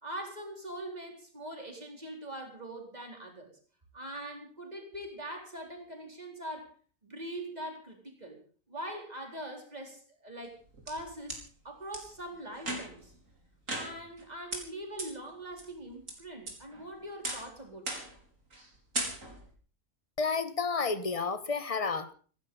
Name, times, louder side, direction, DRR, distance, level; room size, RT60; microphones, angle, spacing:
voice 1, 0.0-3.6 3.9-6.7 7.0-8.4 8.7-13.1 13.7-18.0, right 1 dB, 30° right, 2 dB, 4.4 m, -42 dB
sound 1, 10.4-11.4 11.9-12.0 12.6-13.1 13.7-14.2 14.5-14.6 15.0-15.1 15.6-16.1 16.5-16.8 17.2-17.5 17.9-18.2 18.5-18.7 18.9-19.5, right 2 dB, 75° right, 4.5 m, -37 dB
voice 2, 20.2-22.1, left 4 dB, 30° left, 13 dB, 1.2 m, -31 dB
16.0 x 15.0 x 5.5 m, 0.41 s
omnidirectional pair, 1.4 m